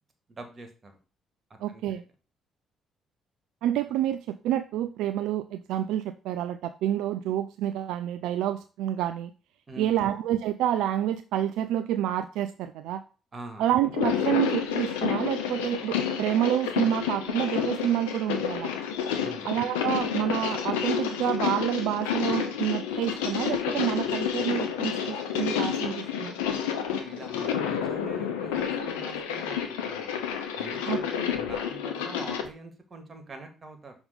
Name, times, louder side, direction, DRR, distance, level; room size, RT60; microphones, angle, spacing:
voice 1, 0.3-1.0 1.7-2.0 9.7-10.1 13.3-13.8 19.2-19.5 26.9-30.3 30.6-33.9, right 2 dB, 40° right, 5 dB, 2.0 m, -44 dB
voice 2, 1.6-2.0 3.6-9.3 9.8-13.0 13.6-18.7 19.4-26.3 30.9-31.0, right 11 dB, 75° right, 10 dB, 0.3 m, -28 dB
sound 1, 13.8-32.5, left 8 dB, 85° left, 0.8 m, -30 dB
6.1 x 3.5 x 5.3 m, 0.34 s
hypercardioid pair, 50°, 0 cm